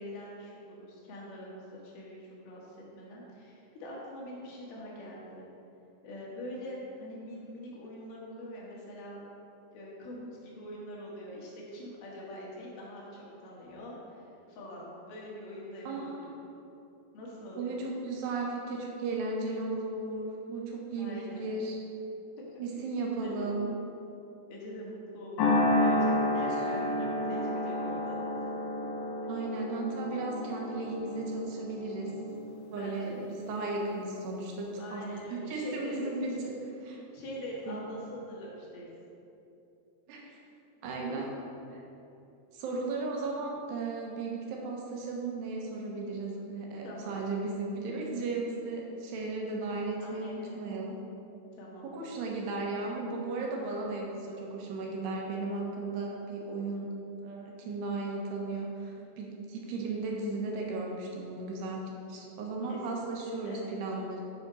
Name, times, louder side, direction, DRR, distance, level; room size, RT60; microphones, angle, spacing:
voice 1, 0.0-5.5 6.0-9.2 9.7-16.4 17.1-17.8 21.0-21.5 22.4-22.6 23.2-23.5 24.5-28.4 32.8-33.3 34.8-36.0 37.1-38.9 41.1-41.3 46.8-47.2 50.0-50.6 51.6-51.9 62.6-62.8 63.4-63.6, equal, 70° left, -4 dB, 3.1 m, -44 dB
voice 2, 15.9-16.3 17.6-21.8 22.6-23.7 29.3-32.1 32.7-35.0 35.3-37.0 37.7-37.8 40.1-40.4 40.8-41.3 42.5-50.9 51.8-56.9 57.2-61.8 62.1-64.2, right 3 dB, 80° right, -1 dB, 3.1 m, -35 dB
sound 1, 25.4-33.9, left 1 dB, 90° left, 3.6 m, -31 dB
7.9 x 5.0 x 5.4 m, 2.8 s
omnidirectional pair, 4.8 m